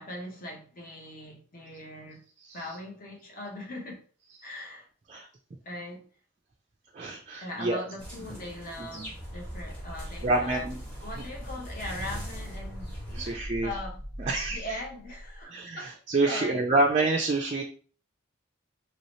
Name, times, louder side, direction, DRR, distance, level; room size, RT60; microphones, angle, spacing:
voice 1, 0.0-2.2 2.5-4.0 4.4-4.9 5.6-6.1 7.4-10.7 11.0-16.0 16.2-16.7 17.0-17.2, left 1 dB, 45° left, 1.0 m, -40 dB
voice 2, 6.9-7.8 8.8-9.1 10.2-10.8 13.1-13.7 14.3-14.6 15.4-17.6, right 2 dB, 35° right, 0.4 m, -27 dB
sound 1, 8.0-13.3, right 1 dB, 5° left, 1.4 m, -44 dB
sound 2, 9.1-15.4, equal, 80° left, 1.2 m, -41 dB
3.0 x 2.8 x 3.0 m
head